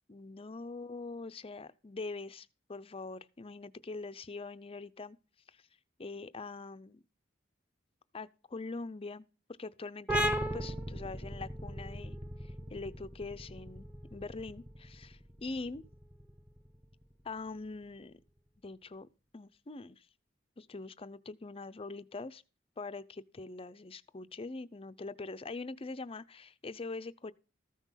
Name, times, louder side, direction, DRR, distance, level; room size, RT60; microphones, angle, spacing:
voice 1, 0.1-5.2 5.5-5.6 6.0-7.0 8.1-9.3 9.6-12.2 12.4-15.8 17.2-18.2 18.6-19.1 19.3-20.1 20.6-22.4 22.8-27.3, left 3 dB, 30° left, 0.6 m, -43 dB
sound 1, 10.1-17.4, equal, 10° right, 1.0 m, -37 dB
14.0 x 6.1 x 5.6 m
head